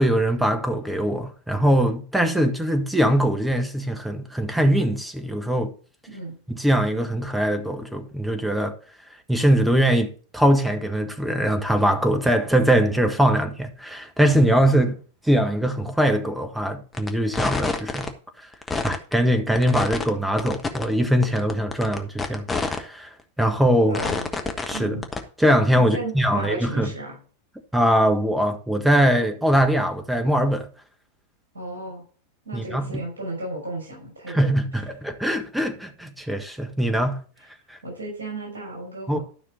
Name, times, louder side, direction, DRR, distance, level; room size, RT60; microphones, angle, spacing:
voice 1, 0.0-5.7 6.5-8.7 9.3-14.9 15.3-18.1 18.8-23.1 23.4-24.0 24.6-25.0 25.4-26.9 27.7-30.7 32.5-33.0 34.3-37.2 37.7-37.8 39.1-39.2, equal, 5° right, 1.5 m, -22 dB
voice 2, 6.1-6.4 23.8-24.3 24.7-25.1 25.8-27.2 31.5-32.0 32.4-34.4 37.8-39.2, right 2 dB, 70° right, 5.6 m, -34 dB
sound 1, 16.9-17.1 17.3-18.1 18.5-19.1 19.5-20.1 20.4-20.8 21.2-22.8 23.2-23.3 23.9-24.8 25.0-25.2, left 3 dB, 15° left, 1.4 m, -27 dB
12.5 x 5.9 x 3.9 m
figure-of-eight pair, 90°, 0 cm